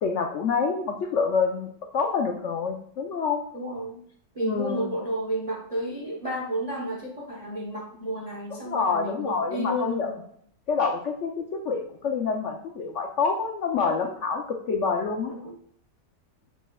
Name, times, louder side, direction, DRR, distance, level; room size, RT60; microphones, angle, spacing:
voice 1, 0.0-3.4 4.4-4.9 8.7-10.1 10.7-15.3, left 5 dB, 75° left, 3 dB, 0.6 m, -27 dB
voice 2, 3.5-4.0 4.3-10.1 15.3-15.6, right 1 dB, 35° right, -1 dB, 0.5 m, -32 dB
6.8 x 6.1 x 2.3 m, 0.64 s
omnidirectional pair, 2.0 m